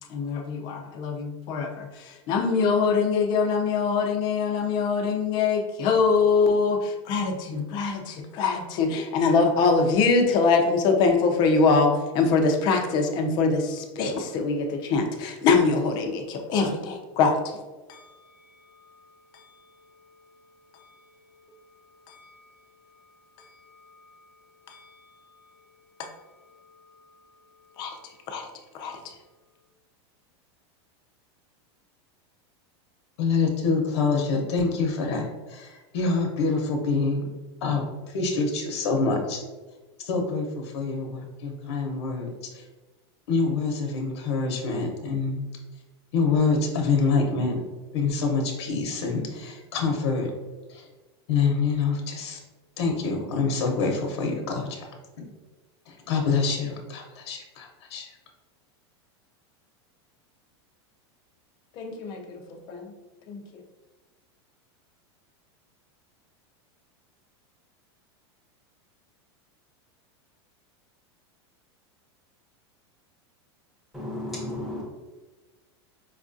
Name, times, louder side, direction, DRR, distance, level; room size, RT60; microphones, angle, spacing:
voice 1, 0.1-17.6 17.9-18.2 18.7-19.1 19.3-19.5 19.8-20.2 20.7-20.9 21.3-21.5 22.1-22.4 23.4-24.2 24.7-25.0 26.4-26.9 27.7-28.5 28.7-29.0 61.7-62.9 63.3-63.6, left 4 dB, 30° left, 4 dB, 0.4 m, -24 dB
voice 2, 33.2-37.3 37.6-39.4 40.0-42.6 43.3-45.4 46.1-47.6 47.9-50.3 50.7-50.9 51.3-52.4 52.8-55.3 55.9-58.1, left 4 dB, 75° left, 2 dB, 0.7 m, -26 dB
voice 3, 73.9-74.8, left 1 dB, ahead, -5 dB, 0.7 m, -33 dB
4.7 x 2.3 x 2.5 m, 1.2 s
supercardioid pair, 165°, 14 cm